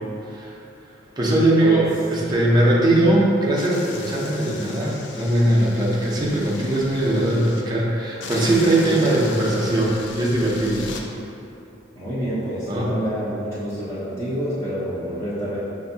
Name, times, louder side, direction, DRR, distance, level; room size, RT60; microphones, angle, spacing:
voice 1, 1.2-10.8 12.7-12.9, right 1 dB, 20° right, -5 dB, 0.6 m, -20 dB
sound 1, 3.6-7.6 8.2-11.0, left 3 dB, 70° left, 0.4 m, -37 dB
voice 2, 11.9-15.6, equal, 15° left, -12 dB, 0.7 m, -27 dB
5.5 x 2.6 x 2.7 m, 2.8 s
head